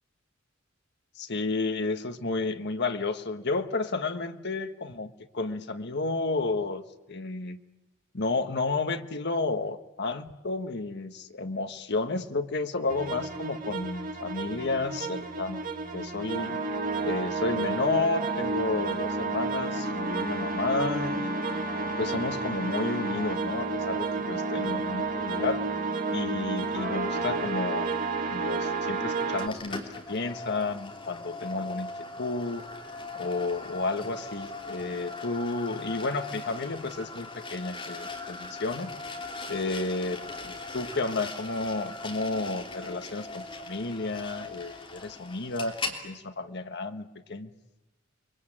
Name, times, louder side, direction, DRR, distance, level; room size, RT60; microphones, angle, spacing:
voice 1, 1.2-6.8 7.1-7.6 8.1-15.6 15.9-16.6 17.0-21.4 22.0-25.6 26.1-31.9 32.2-32.6 33.1-38.9 39.5-47.5, left 3 dB, 55° left, 7 dB, 1.4 m, -31 dB
sound 1, 12.9-29.5, right 3 dB, 45° right, 2.0 m, -31 dB
sound 2, 29.4-46.0, left 3 dB, 25° left, 3.3 m, -40 dB
29.5 x 22.0 x 8.8 m, 1.0 s
head